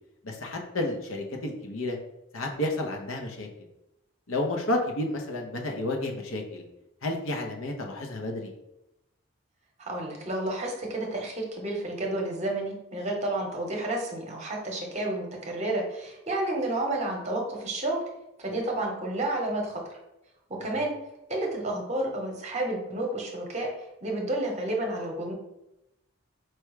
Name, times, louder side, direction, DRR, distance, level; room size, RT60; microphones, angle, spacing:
voice 1, 0.2-2.0 2.3-3.5 4.3-6.6 7.0-8.5 20.7-20.8, left 1 dB, 65° left, 2 dB, 0.7 m, -31 dB
voice 2, 9.8-18.0 18.4-19.9 20.5-21.0 21.3-23.7 24.0-25.3, right 1 dB, 30° right, 0 dB, 0.9 m, -30 dB
4.6 x 2.2 x 4.7 m, 0.90 s
head